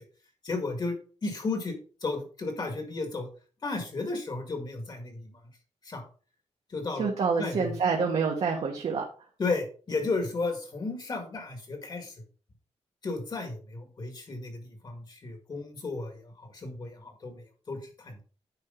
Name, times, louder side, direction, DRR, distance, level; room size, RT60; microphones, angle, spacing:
voice 1, 0.4-0.9 1.2-1.7 2.0-3.3 3.6-5.3 5.9-6.0 6.7-7.1 7.4-7.7 9.4-12.1 13.0-18.2, left 3 dB, 35° left, 5 dB, 2.0 m, -33 dB
voice 2, 6.9-9.0, right 5 dB, 60° right, -1 dB, 1.6 m, -27 dB
9.8 x 4.8 x 3.9 m, 0.40 s
wide cardioid pair, 155°, 12 cm